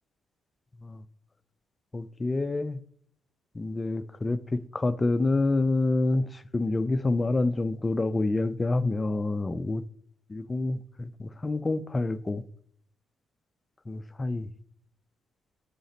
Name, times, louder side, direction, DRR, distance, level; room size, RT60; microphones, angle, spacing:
voice 1, 1.9-2.8 3.5-9.8 10.3-12.4 13.9-14.5, left 2 dB, 25° left, 0.3 m, -27 dB
5.1 x 5.0 x 4.0 m
cardioid pair, 90°, 0 cm